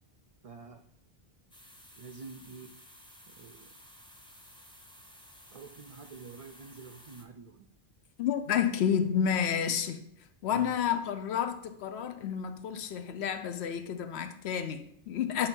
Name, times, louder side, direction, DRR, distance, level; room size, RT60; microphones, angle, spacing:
voice 1, 0.4-0.8 2.0-2.8 3.3-3.7 5.5-7.7 10.5-10.9, right 4 dB, 55° right, 0.4 m, -47 dB
sound 1, 1.5-7.2, equal, 5° left, 0.6 m, -55 dB
voice 2, 8.2-10.0 10.4-15.5, left 8 dB, 85° left, 0.9 m, -30 dB
8.0 x 2.8 x 5.2 m
omnidirectional pair, 1.1 m